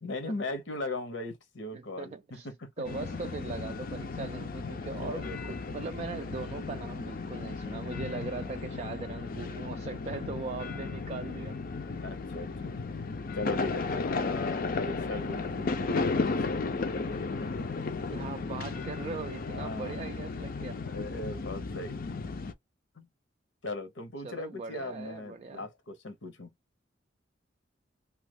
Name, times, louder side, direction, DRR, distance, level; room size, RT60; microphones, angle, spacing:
voice 1, 0.0-2.8 5.0-5.6 7.6-8.0 12.0-12.7 13.3-16.6 17.4-18.0 19.3-20.0 20.9-22.2 23.0-23.1 23.6-26.5, left 2 dB, 80° left, 1.0 m, -39 dB
voice 2, 1.7-2.5 2.8-11.6 18.1-20.8 24.2-25.7, right 4 dB, 35° right, 0.3 m, -40 dB
sound 1, 2.8-22.5, left 4 dB, 50° left, 0.5 m, -34 dB
2.9 x 2.4 x 3.4 m
head